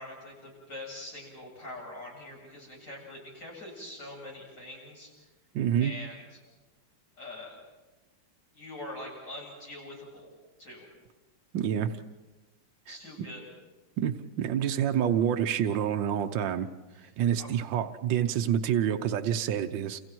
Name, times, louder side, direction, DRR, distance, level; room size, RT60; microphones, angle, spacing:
voice 1, 0.0-5.1 5.8-6.4 7.2-7.6 8.5-10.3 10.6-10.9 12.9-13.4 17.0-17.1 17.4-17.5, left 1 dB, 60° left, -2 dB, 8.7 m, -43 dB
voice 2, 5.6-5.9 11.5-11.9 12.9-13.0 14.0-16.7 17.2-20.0, right 9 dB, 75° right, 7 dB, 1.6 m, -27 dB
29.5 x 29.0 x 4.6 m, 1.2 s
omnidirectional pair, 2.1 m